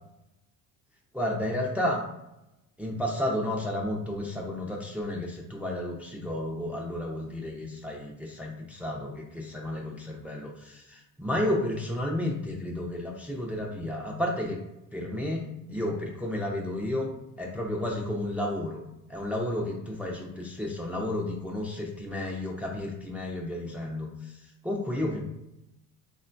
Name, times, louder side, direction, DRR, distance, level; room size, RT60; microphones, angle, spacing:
voice 1, 1.1-2.0 2.8-14.6 14.9-17.1 17.4-18.8 19.1-25.2, left 1 dB, 5° right, 0 dB, 0.3 m, -32 dB
3.6 x 2.2 x 2.5 m, 0.89 s
supercardioid pair, 90°, 42 cm